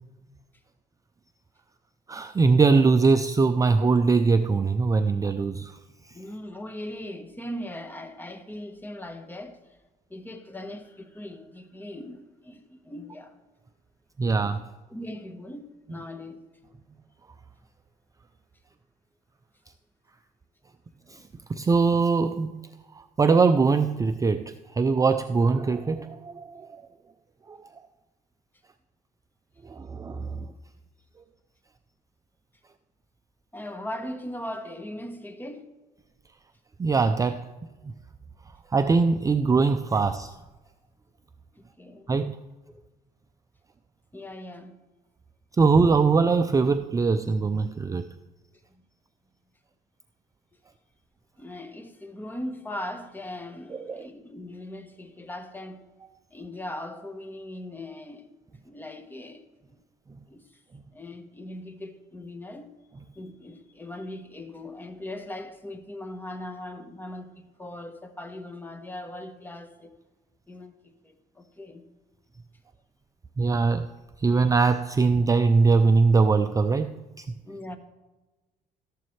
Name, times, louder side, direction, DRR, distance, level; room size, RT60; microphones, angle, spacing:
voice 1, 2.1-5.8 6.0-6.1 14.2-14.7 21.1-21.2 21.5-26.8 27.5-27.6 29.6-30.5 36.8-37.5 38.7-40.3 42.1-42.4 45.6-48.1 53.9-54.1 73.4-73.9 74.2-76.9 77.2-77.3, right 4 dB, 20° right, 0.4 m, -22 dB
voice 2, 6.1-9.6 10.1-13.4 14.9-16.4 33.5-35.7 41.6-42.1 42.7-42.8 44.1-44.8 48.7-48.8 51.4-55.8 56.3-58.3 58.6-59.8 60.3-60.6 60.9-62.7 63.1-70.0 70.5-71.9 74.3-74.5 77.4-77.8, left 1 dB, 10° left, 1.1 m, -39 dB
14.0 x 11.5 x 3.2 m
cardioid pair, 110°, 17 cm